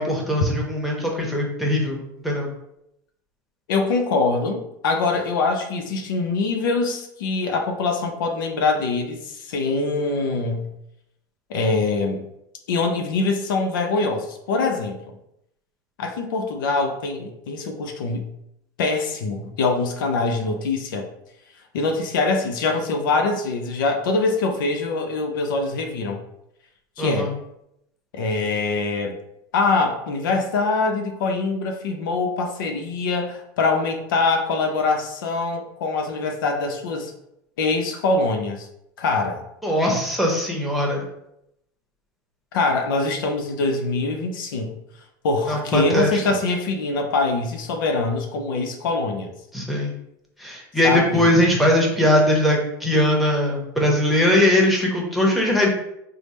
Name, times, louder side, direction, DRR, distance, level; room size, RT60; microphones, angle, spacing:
voice 1, 0.0-2.0 2.2-2.5 27.0-27.3 39.6-41.0 45.5-46.1 49.5-49.9 50.4-55.7, left 1 dB, ahead, -2 dB, 0.9 m, -20 dB
voice 2, 3.7-10.7 11.5-12.3 12.7-15.0 16.0-18.3 18.8-21.1 21.7-26.2 27.0-27.3 28.1-29.2 29.5-37.1 37.6-38.7 39.0-39.4 42.5-44.8 45.2-49.3 50.8-51.3, left 3 dB, 90° left, 4 dB, 0.5 m, -23 dB
3.3 x 2.0 x 4.1 m, 0.80 s
supercardioid pair, 115°, 11 cm